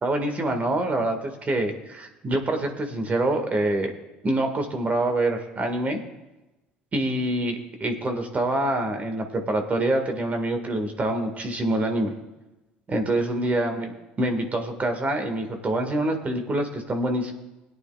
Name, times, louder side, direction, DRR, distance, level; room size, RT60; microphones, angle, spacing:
voice 1, 0.0-3.9 4.2-6.0 6.9-12.1 12.9-17.3, right 1 dB, 30° right, 5 dB, 1.9 m, -26 dB
21.0 x 9.4 x 2.4 m, 1.0 s
hypercardioid pair, 65°, 5 cm